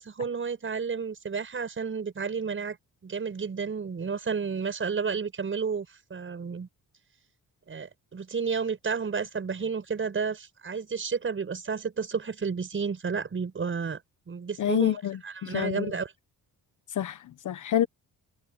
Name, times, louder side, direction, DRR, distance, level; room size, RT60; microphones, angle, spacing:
voice 1, 0.0-2.8 3.0-6.7 7.7-14.0 14.3-15.0 15.2-16.1, right 5 dB, 35° right, 6.7 m, -31 dB
voice 2, 14.6-15.9 16.9-17.9, left 11 dB, 55° left, 1.0 m, -28 dB
cardioid pair, 145°, 36 cm